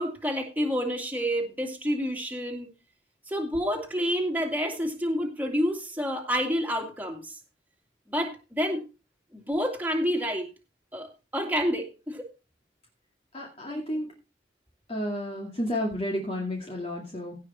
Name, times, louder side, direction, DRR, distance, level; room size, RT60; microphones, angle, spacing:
voice 1, 0.0-2.7 3.3-7.4 8.1-8.8 9.3-10.5 10.9-12.2 13.7-13.8, equal, 10° right, 2 dB, 2.5 m, -29 dB
voice 2, 13.3-14.1 14.9-17.4, left 1 dB, 30° left, 0 dB, 2.3 m, -31 dB
17.0 x 5.8 x 4.3 m, 0.30 s
head